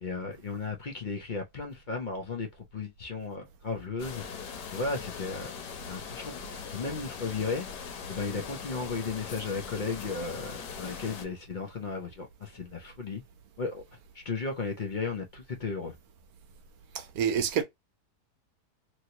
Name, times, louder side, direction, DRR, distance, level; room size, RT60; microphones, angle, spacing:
voice 1, 0.0-4.2 4.7-5.5 5.9-6.3 6.7-7.7 8.1-13.2 13.6-13.8 14.1-16.0, left 4 dB, 55° left, 0.5 m, -35 dB
sound 1, 4.0-11.3, left 6 dB, 90° left, 1.4 m, -41 dB
voice 2, 16.9-17.6, right 8 dB, 70° right, 1.1 m, -27 dB
3.1 x 2.7 x 2.8 m
omnidirectional pair, 1.8 m